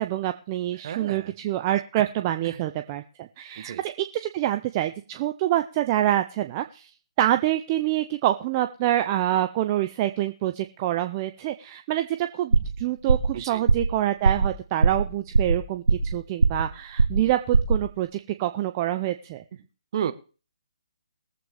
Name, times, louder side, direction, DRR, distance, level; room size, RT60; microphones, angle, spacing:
voice 1, 0.0-6.9 7.2-19.4, right 13 dB, 25° right, 8 dB, 0.6 m, -26 dB
voice 2, 0.8-1.3 2.4-2.6 3.6-3.8 13.3-13.6 19.9-20.1, right 9 dB, 45° right, 10 dB, 1.2 m, -31 dB
sound 1, 12.5-12.8 13.1-13.4 13.7-13.9 14.2-14.5 14.8-15.1 15.3-16.1 16.4-16.7 17.0-17.3 17.5-17.8, right 4 dB, 80° right, 0.8 m, -20 dB
21.5 x 7.8 x 3.4 m, 0.36 s
figure-of-eight pair, 145°, 4 cm